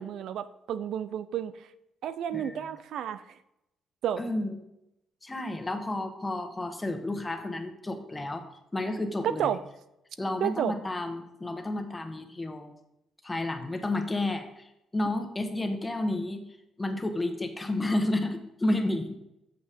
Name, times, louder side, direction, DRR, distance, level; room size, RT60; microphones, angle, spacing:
voice 1, 0.0-1.7 2.0-3.4 4.0-4.2 9.4-9.6 10.4-10.7, right 9 dB, 75° right, 13 dB, 0.4 m, -31 dB
voice 2, 2.3-2.7 4.2-4.6 5.2-8.4 8.7-9.6 10.2-12.7 13.2-16.4 16.8-19.2, left 2 dB, 20° left, 6 dB, 1.2 m, -31 dB
8.3 x 6.7 x 3.6 m, 0.87 s
cardioid pair, 90°, 0 cm